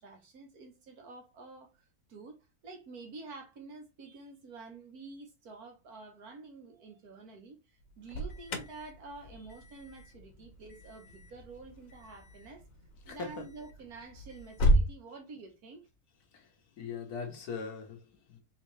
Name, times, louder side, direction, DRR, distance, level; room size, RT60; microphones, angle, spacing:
voice 1, 0.0-7.6 8.0-12.6 13.0-15.8, right 3 dB, 75° right, 1.6 m, -49 dB
Alarm, 7.8-14.9, equal, 65° left, 1.3 m, -34 dB
voice 2, 13.0-13.5 16.3-18.4, left 5 dB, 80° left, 1.6 m, -41 dB
4.3 x 3.4 x 3.2 m
omnidirectional pair, 1.6 m